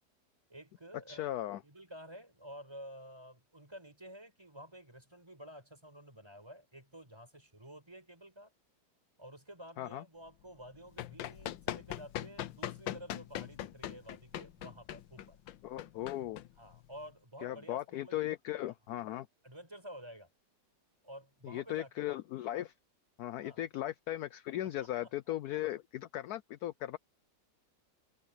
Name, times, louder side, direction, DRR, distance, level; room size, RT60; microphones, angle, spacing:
voice 1, 0.5-8.5 9.2-15.4 16.6-18.3 18.7-18.8 19.4-20.3 21.0-22.1 23.4-23.6 24.8-25.3, equal, 15° right, 5.1 m, -51 dB
voice 2, 1.1-1.6 9.8-10.0 15.6-16.4 17.4-19.3 21.4-22.7 23.2-27.0, left 14 dB, 70° left, 1.0 m, -37 dB
Run, 10.6-17.1, left 12 dB, 90° left, 1.5 m, -41 dB
omnidirectional pair, 2.0 m